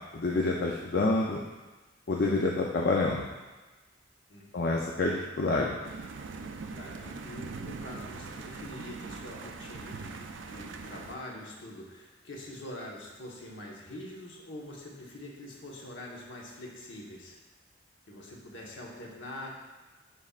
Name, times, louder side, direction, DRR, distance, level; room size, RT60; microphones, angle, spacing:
voice 1, 0.1-1.4 2.1-3.3 4.5-5.8, left 2 dB, 55° left, -2 dB, 0.5 m, -27 dB
voice 2, 4.3-4.8 6.8-17.4 18.1-19.5, left 1 dB, 70° left, -2 dB, 1.3 m, -44 dB
sound 1, 5.8-11.1, right 4 dB, 65° right, 0.4 m, -42 dB
11.0 x 4.3 x 2.4 m, 1.2 s
head